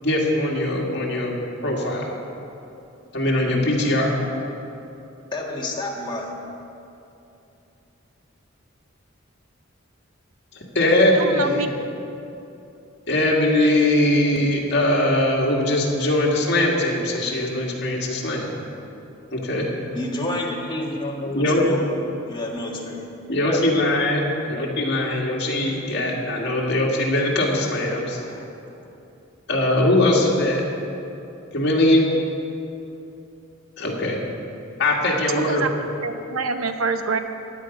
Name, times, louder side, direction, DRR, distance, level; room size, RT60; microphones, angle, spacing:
voice 1, 0.0-1.4 1.6-2.1 3.1-4.2 10.7-11.7 13.1-18.5 19.3-19.6 21.3-21.6 23.3-28.2 29.5-30.6 31.5-32.1 33.8-34.2 34.8-35.8, left 1 dB, 55° left, -2 dB, 2.1 m, -21 dB
voice 2, 5.3-6.4 19.7-21.9 22.2-23.0 23.4-23.6 25.6-25.7 28.1-28.5 28.8-29.0, left 1 dB, 20° left, -2 dB, 1.6 m, -30 dB
voice 3, 11.1-11.7 35.3-35.7 36.0-37.2, right 4 dB, 90° right, 7 dB, 0.8 m, -26 dB
15.0 x 9.9 x 5.2 m, 2.8 s
head